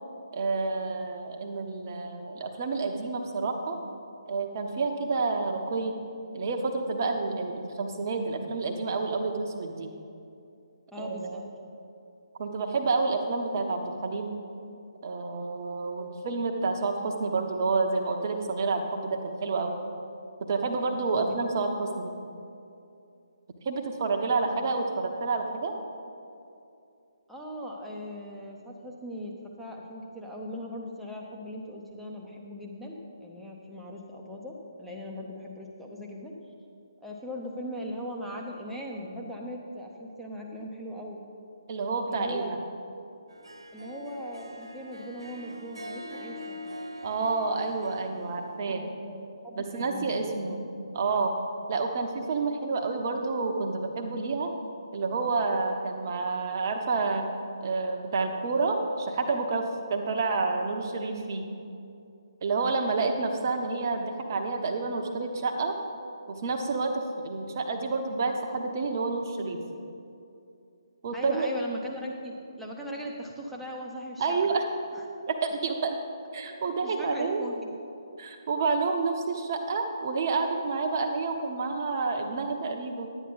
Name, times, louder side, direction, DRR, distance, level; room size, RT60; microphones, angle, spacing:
voice 1, 0.3-3.8 4.3-6.0 6.3-9.9 11.0-11.4 12.4-14.3 15.0-19.8 20.5-22.1 23.6-25.7 41.7-42.6 47.0-48.8 49.5-50.6 50.9-51.3 51.7-54.5 54.9-57.2 57.6-61.5 62.4-65.7 66.3-69.6 71.0-71.5 74.2-74.7 75.3-75.9 76.3-77.4 78.2-83.1, right 3 dB, 35° right, 3 dB, 0.9 m, -29 dB
voice 2, 10.9-11.4 21.1-21.7 27.3-36.3 37.0-41.2 42.1-42.9 43.7-46.7 48.6-50.3 71.1-74.3 74.9-75.0 76.8-77.7, equal, ahead, -3 dB, 0.9 m, -39 dB
Harp, 43.3-48.6, left 1 dB, 75° right, 1.5 m, -43 dB
11.0 x 9.1 x 4.0 m, 2.6 s
figure-of-eight pair, 140°, 3 cm